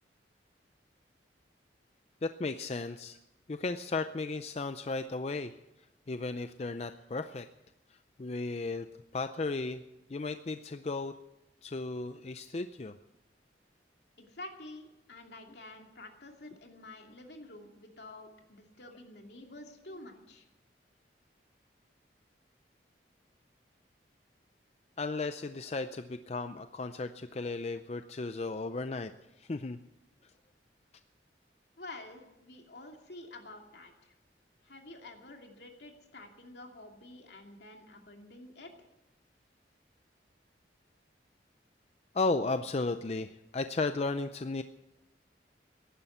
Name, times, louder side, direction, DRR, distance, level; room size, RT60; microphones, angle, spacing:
voice 1, 2.2-3.2 3.5-5.5 6.1-7.5 7.9-8.9 9.1-9.8 10.1-11.2 11.6-12.9 25.0-29.8 42.1-44.6, left 3 dB, 35° left, 10 dB, 0.5 m, -35 dB
voice 2, 14.2-20.5 31.8-34.1 34.6-38.7, left 2 dB, 70° left, 3 dB, 2.6 m, -49 dB
15.5 x 11.5 x 8.0 m, 0.94 s
head